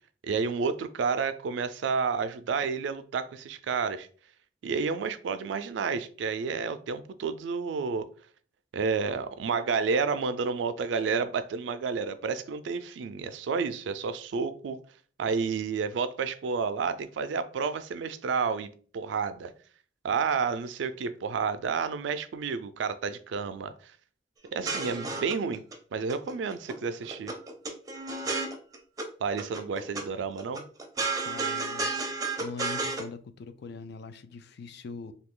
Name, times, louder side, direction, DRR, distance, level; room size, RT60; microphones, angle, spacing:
voice 1, 0.2-4.1 4.6-8.1 8.7-14.8 15.2-19.5 20.0-23.9 24.5-25.6 25.9-27.3 29.2-30.6, right 5 dB, 85° right, 0.3 m, -30 dB
Chaotic Out of Tune Mandolin, 24.4-25.8 26.1-26.8 27.0-29.1 29.4-30.0 30.4-33.0, right 3 dB, 20° right, 0.4 m, -32 dB
voice 2, 31.2-31.9 32.4-35.1, left 4 dB, 65° left, 0.3 m, -42 dB
2.7 x 2.3 x 3.6 m
head